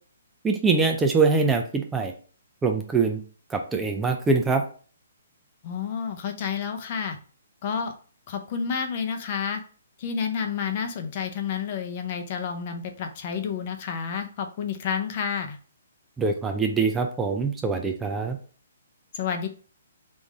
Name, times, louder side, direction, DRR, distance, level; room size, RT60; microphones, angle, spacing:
voice 1, 0.4-2.1 2.6-3.2 3.5-4.6 16.2-18.4, right 4 dB, 10° right, 3 dB, 0.4 m, -23 dB
voice 2, 5.6-7.2 7.6-8.0 8.3-9.6 10.0-15.6 19.1-19.5, left 6 dB, 40° left, 6 dB, 0.6 m, -30 dB
3.7 x 2.6 x 4.6 m, 0.42 s
hypercardioid pair, 155°, 0 cm